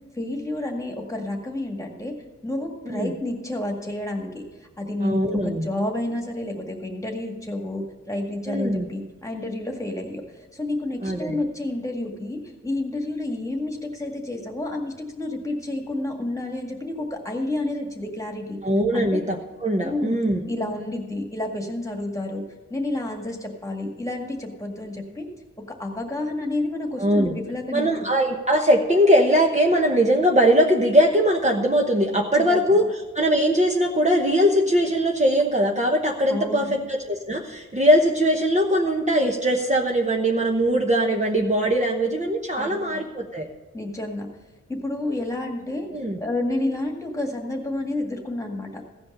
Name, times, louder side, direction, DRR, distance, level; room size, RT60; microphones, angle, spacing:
voice 1, 0.2-2.1 2.4-4.4 4.8-10.2 10.5-18.6 18.9-19.1 19.8-20.2 20.5-22.4 22.7-25.3 25.8-27.9 32.5-32.7 36.3-36.7 42.6-43.0 43.7-44.3 44.7-45.9 46.2-48.8, left 1 dB, 10° left, 1 dB, 1.9 m, -30 dB
voice 2, 5.0-5.7 8.5-8.9 11.0-11.4 18.6-19.4 19.6-20.4 27.0-27.3 27.7-32.8 33.1-43.5 45.9-46.2, equal, 25° right, 0 dB, 1.1 m, -21 dB
15.5 x 5.3 x 6.7 m, 1.2 s
wide cardioid pair, 85°, 29 cm